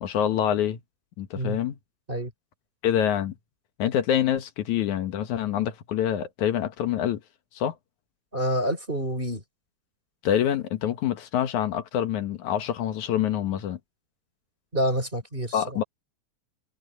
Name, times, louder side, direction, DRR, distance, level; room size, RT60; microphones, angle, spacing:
voice 1, 0.0-0.8 1.2-1.8 2.8-3.3 3.8-7.2 7.6-7.8 10.2-13.8 15.5-15.8, left 10 dB, 80° left, 2.7 m, -26 dB
voice 2, 8.3-9.4 14.7-15.8, equal, 15° right, 3.9 m, -28 dB
omnidirectional pair, 3.3 m